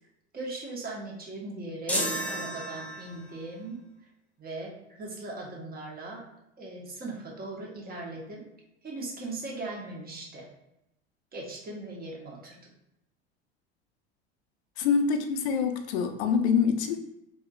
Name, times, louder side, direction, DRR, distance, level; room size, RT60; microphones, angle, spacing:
voice 1, 0.3-3.8 4.4-6.3 6.6-8.4 8.8-10.5 11.3-12.6, right 2 dB, 25° right, -2 dB, 1.1 m, -39 dB
sound 1, 1.9-3.4, equal, 5° left, 0.7 m, -32 dB
voice 2, 14.8-17.0, left 6 dB, 70° left, 7 dB, 0.6 m, -25 dB
3.4 x 2.7 x 2.4 m, 0.86 s
hypercardioid pair, 80°, 34 cm